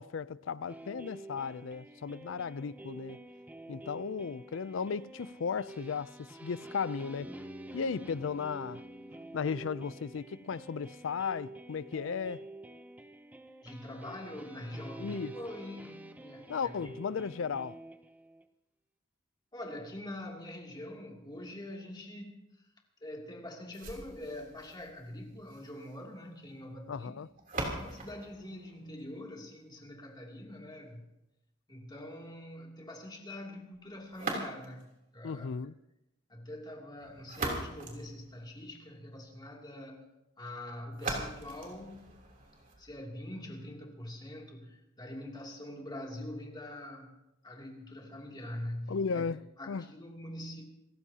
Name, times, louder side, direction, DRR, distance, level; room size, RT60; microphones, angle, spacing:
voice 1, 0.0-3.2 3.7-7.3 7.7-8.8 9.3-12.4 15.0-15.3 16.5-17.8 26.9-27.3 35.2-35.7 48.9-49.4 49.7-49.8, left 5 dB, 85° left, 0.5 m, -35 dB
sound 1, 0.7-18.5, right 2 dB, 10° right, 0.7 m, -49 dB
Bass guitar, 7.2-11.2, equal, 25° right, 3.8 m, -50 dB
voice 2, 13.6-17.2 19.5-22.4 23.0-27.2 27.8-31.1 31.7-34.9 35.1-35.5 36.3-40.0 40.4-42.1 42.8-47.1 47.4-49.3 49.6-50.6, left 1 dB, 20° left, 2.7 m, -44 dB
sound 2, 23.7-29.7 34.1-35.0 37.0-38.9 40.9-42.9, right 2 dB, 45° right, 3.3 m, -41 dB
27.5 x 14.5 x 2.9 m
head